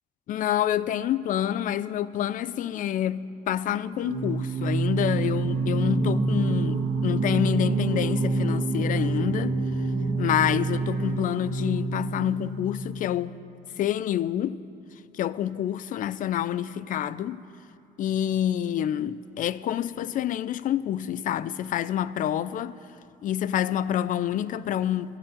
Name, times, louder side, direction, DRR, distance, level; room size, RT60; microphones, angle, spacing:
voice 1, 0.3-9.6 10.2-13.3 13.8-14.6 15.1-17.4 18.0-22.8 23.2-25.2, left 11 dB, 50° left, 0.4 m, -27 dB
Singing, 4.0-12.9, right 3 dB, 65° right, 2.4 m, -27 dB
13.0 x 8.6 x 8.4 m
cardioid pair, 110°, 17 cm